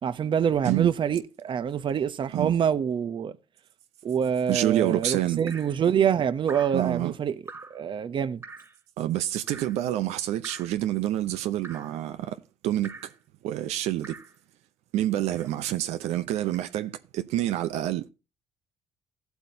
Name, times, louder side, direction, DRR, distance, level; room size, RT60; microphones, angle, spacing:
voice 1, 0.0-3.3 4.0-7.4 7.7-8.4, right 8 dB, 50° right, 0.8 m, -26 dB
voice 2, 4.5-5.4 6.7-7.1 9.0-13.1 13.4-14.2 14.9-18.1, right 13 dB, 80° right, 0.7 m, -28 dB
Drip, 5.5-5.8 6.5-6.8 7.5-7.8 8.4-8.8 9.5-9.8 10.4-10.8 11.6-12.0 12.8-13.2 14.0-14.4 15.3-15.6 16.5-16.7, right 3 dB, 25° right, 2.0 m, -44 dB
14.5 x 8.2 x 2.7 m
cardioid pair, 80°, 11 cm